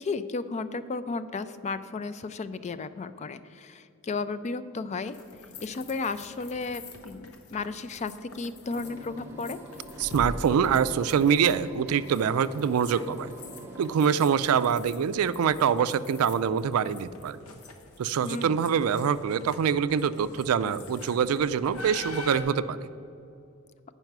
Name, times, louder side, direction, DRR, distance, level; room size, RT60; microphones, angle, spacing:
voice 1, 0.0-5.2 5.6-9.6 18.2-18.6, left 4 dB, 30° left, 13 dB, 0.3 m, -34 dB
sound 1, 5.0-22.4, left 2 dB, 85° left, 0.9 m, -45 dB
sound 2, 8.7-14.4, right 1 dB, 10° right, 0.7 m, -45 dB
voice 2, 10.0-13.3 13.8-17.4 18.0-22.8, right 7 dB, 85° right, 15 dB, 0.3 m, -25 dB
9.1 x 5.6 x 5.9 m, 2.6 s
head